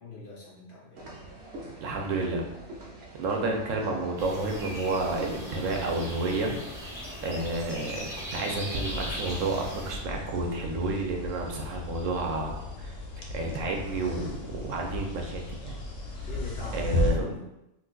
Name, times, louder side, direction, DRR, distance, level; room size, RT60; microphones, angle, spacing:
voice 1, 0.0-1.0 16.2-17.5, left 3 dB, 60° left, -4 dB, 0.6 m, -43 dB
sound 1, 1.0-7.1, right 2 dB, 65° right, 0.9 m, -45 dB
voice 2, 1.8-2.5 3.2-6.6 7.2-15.8 16.7-17.3, right 2 dB, 90° right, 1 dB, 1.0 m, -30 dB
sound 2, 4.2-10.0, equal, 5° right, 0.5 m, -38 dB
sound 3, 8.7-17.1, left 1 dB, 90° left, 1.0 m, -35 dB
3.8 x 2.5 x 2.3 m, 0.90 s
omnidirectional pair, 1.3 m